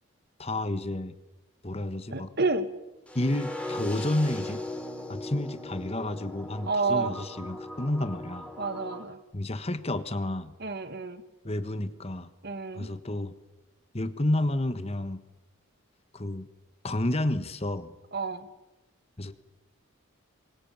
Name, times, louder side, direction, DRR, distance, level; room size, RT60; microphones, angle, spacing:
voice 1, 0.4-1.1 1.6-2.3 3.1-4.6 5.1-8.5 9.3-10.5 11.4-12.3 12.7-13.3 13.9-15.2 16.1-16.5 16.8-17.9 19.2-19.3, left 1 dB, 30° left, 11 dB, 1.4 m, -30 dB
voice 2, 2.1-2.7 6.6-7.1 8.6-9.2 10.6-11.2 12.4-12.9 18.1-18.5, right 3 dB, 50° right, 11 dB, 1.9 m, -29 dB
sound 1, 3.1-9.0, left 1 dB, 5° left, 3.9 m, -38 dB
26.0 x 24.0 x 8.9 m, 1.0 s
head